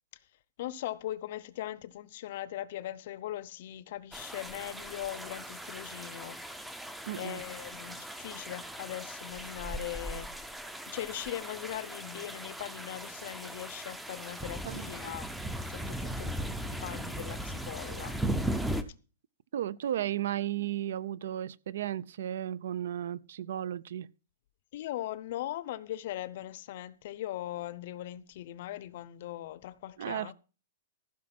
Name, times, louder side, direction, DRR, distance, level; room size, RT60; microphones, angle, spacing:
voice 1, 0.6-6.5 7.2-10.5 10.9-15.3 15.7-16.3 16.6-18.2 19.9-20.1 24.7-30.3, left 13 dB, 40° left, 0.7 m, -40 dB
sound 1, 4.1-18.8, right 1 dB, ahead, 0.6 m, -38 dB
voice 2, 7.1-7.4 14.6-14.8 19.5-24.1 30.0-30.3, right 11 dB, 55° right, 0.5 m, -34 dB
15.0 x 6.1 x 6.0 m
hypercardioid pair, 180°, 0 cm